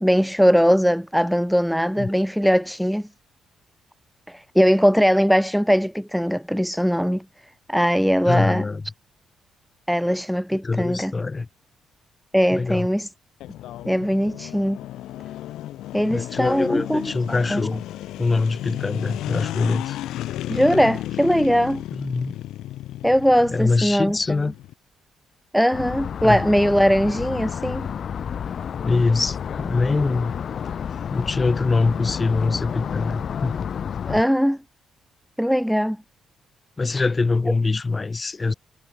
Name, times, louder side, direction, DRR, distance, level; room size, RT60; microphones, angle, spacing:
voice 1, 0.0-3.1 4.3-7.2 7.7-8.7 9.9-11.1 12.3-13.1 13.9-14.8 15.9-17.6 20.5-21.8 23.0-24.2 25.5-27.9 34.1-34.6 35.4-36.0, equal, ahead, 0.8 m, -20 dB
voice 2, 8.2-8.8 10.5-11.5 12.5-12.9 16.1-17.8 18.2-20.0 22.0-22.4 23.5-24.5 26.2-26.4 28.8-30.3 31.1-33.7 36.8-38.5, left 3 dB, 25° left, 4.8 m, -23 dB
sound 1, 13.4-24.7, left 14 dB, 85° left, 5.8 m, -34 dB
sound 2, 25.7-34.2, left 7 dB, 55° left, 5.6 m, -30 dB
cardioid pair, 90°, 0 cm